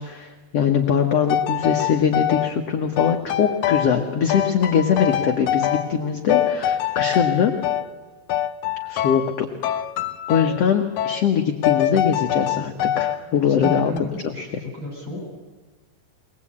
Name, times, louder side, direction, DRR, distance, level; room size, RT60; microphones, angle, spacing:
voice 1, 0.0-7.5 8.9-9.5 10.3-13.9, left 7 dB, 70° left, 3 dB, 1.5 m, -22 dB
sound 1, 1.3-2.5 3.0-4.0 4.3-6.0 6.3-7.9 8.3-9.4 9.6-10.6 11.0-11.2 11.6-13.2 13.6-14.0, left 10 dB, 90° left, 1.6 m, -24 dB
voice 2, 13.4-15.3, equal, 30° right, 1 dB, 7.0 m, -33 dB
22.0 x 20.5 x 8.6 m, 1.3 s
omnidirectional pair, 4.5 m